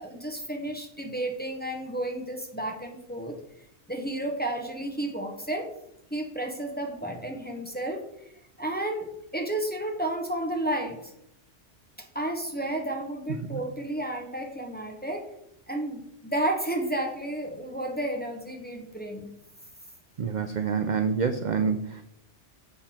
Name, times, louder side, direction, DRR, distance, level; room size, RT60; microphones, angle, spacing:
voice 1, 0.0-3.4 3.9-5.7 6.1-8.0 8.6-11.1 12.0-15.3 15.7-19.3, right 1 dB, 10° left, 3 dB, 0.9 m, -32 dB
voice 2, 20.2-22.0, right 6 dB, 55° right, 7 dB, 0.5 m, -27 dB
7.9 x 5.8 x 4.3 m, 0.78 s
omnidirectional pair, 1.2 m